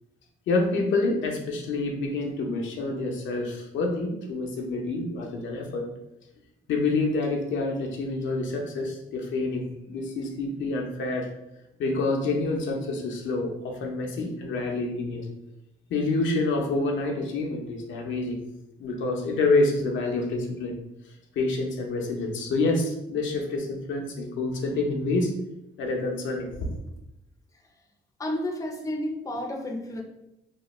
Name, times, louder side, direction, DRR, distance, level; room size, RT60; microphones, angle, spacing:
voice 1, 0.5-5.8 6.7-11.3 11.8-15.3 15.9-18.4 18.8-20.7 21.4-25.3 25.8-26.7, left 3 dB, 75° left, 1 dB, 0.6 m, -27 dB
voice 2, 28.2-30.0, left 1 dB, 15° left, 1 dB, 0.5 m, -31 dB
3.0 x 2.1 x 3.0 m, 0.86 s
cardioid pair, 90°, 20 cm